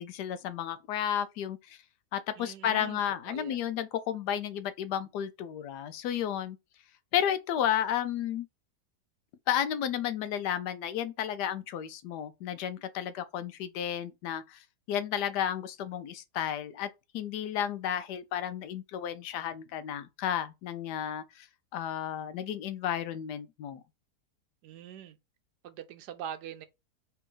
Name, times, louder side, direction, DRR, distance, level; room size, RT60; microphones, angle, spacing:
voice 1, 0.0-1.8 2.1-6.6 7.1-8.5 9.5-21.5 21.7-23.8, left 10 dB, 90° left, 1.2 m, -32 dB
voice 2, 2.4-3.0 3.3-3.6 24.6-25.2 25.6-26.7, right 9 dB, 80° right, 1.2 m, -42 dB
3.4 x 3.0 x 4.7 m
omnidirectional pair, 1.7 m